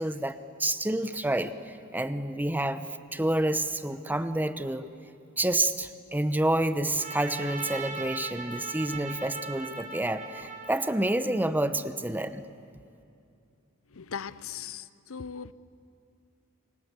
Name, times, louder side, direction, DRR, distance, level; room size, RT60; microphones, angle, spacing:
voice 1, 0.0-1.5 1.9-4.9 5.4-12.5, right 1 dB, 10° right, 11 dB, 0.9 m, -28 dB
Trumpet, 7.0-11.4, right 4 dB, 35° right, 3.7 m, -39 dB
voice 2, 14.0-14.8 15.1-15.5, left 7 dB, 65° left, 16 dB, 0.8 m, -38 dB
28.0 x 25.0 x 8.1 m, 2.6 s
head